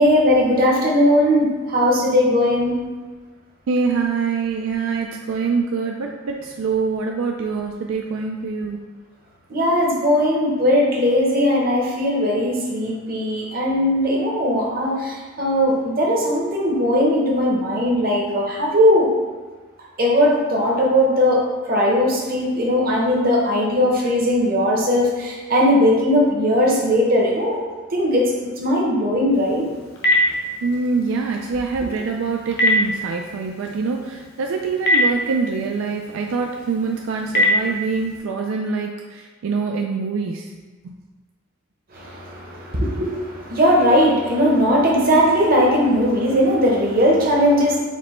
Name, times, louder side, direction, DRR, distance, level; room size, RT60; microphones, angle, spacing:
voice 1, 0.0-2.8 9.5-19.1 20.0-21.4 21.7-27.6 27.9-28.3 28.6-29.6 41.9-47.8, equal, 45° right, -3 dB, 0.9 m, -18 dB
voice 2, 3.7-8.8 30.6-40.5 40.8-41.0, right 4 dB, 75° right, 1 dB, 0.3 m, -24 dB
Telephone, 29.3-38.2, left 1 dB, 55° left, 0.8 m, -25 dB
5.0 x 2.2 x 4.2 m, 1.4 s
head